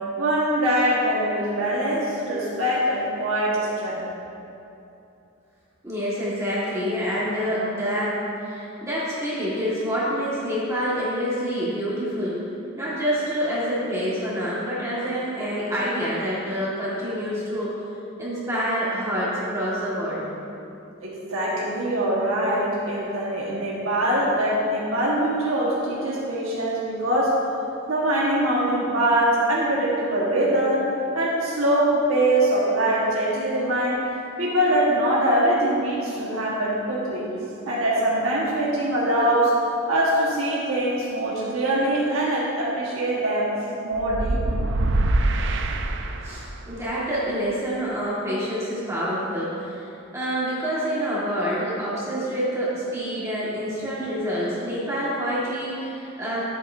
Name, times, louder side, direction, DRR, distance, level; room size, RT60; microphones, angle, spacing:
voice 1, 0.2-4.0 21.0-27.3 27.9-30.9 31.1-34.0 34.4-37.3 37.6-39.5 39.9-43.5 43.8-44.6, right 1 dB, 80° right, -6 dB, 1.5 m, -23 dB
voice 2, 5.8-12.4 12.7-17.8 18.2-20.2 46.2-56.4, equal, 15° right, -9 dB, 1.7 m, -27 dB
sound 1, 44.0-46.6, right 2 dB, 60° right, 0.5 m, -24 dB
12.0 x 8.2 x 2.7 m, 2.8 s
head